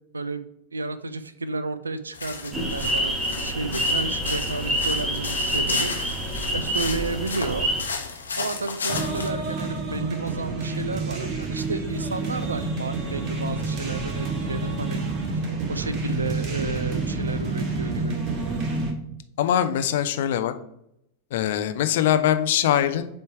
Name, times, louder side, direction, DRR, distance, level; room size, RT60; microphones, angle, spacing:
voice 1, 0.1-0.4 0.7-5.9 6.2-7.7 8.4-15.1 15.4-18.2, right 3 dB, 75° right, 13 dB, 0.5 m, -32 dB
sound 1, 2.1-9.3, left 5 dB, 75° left, 1.0 m, -34 dB
sound 2, 2.5-7.8, equal, 10° right, 1.2 m, -27 dB
sound 3, 8.9-18.9, right 3 dB, 40° right, 1.3 m, -29 dB
voice 2, 19.4-20.5 21.3-23.1, left 10 dB, 55° left, 9 dB, 0.5 m, -22 dB
6.9 x 3.3 x 4.6 m, 0.78 s
figure-of-eight pair, 90°, 0 cm